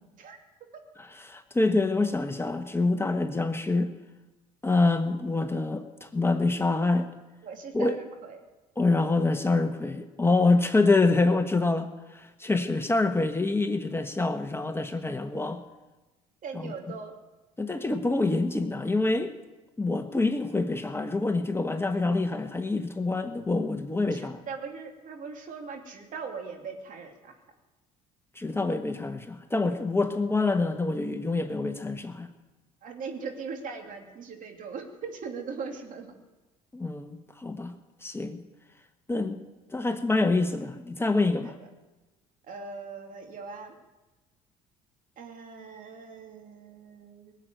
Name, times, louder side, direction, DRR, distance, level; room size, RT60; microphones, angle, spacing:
voice 1, 1.0-3.9 4.6-7.1 7.7-8.0 8.8-15.6 16.5-16.7 17.6-19.3 19.8-24.4 28.3-32.3 36.7-37.7 38.0-38.4 39.1-41.6, left 3 dB, 15° left, 8 dB, 1.2 m, -26 dB
voice 2, 7.4-8.4 16.4-17.1 24.1-27.4 32.8-36.1 41.4-41.5 42.5-43.7 45.2-47.3, right 5 dB, 55° right, 3 dB, 2.9 m, -40 dB
19.5 x 8.1 x 9.2 m, 1.1 s
hypercardioid pair, 65°, 17 cm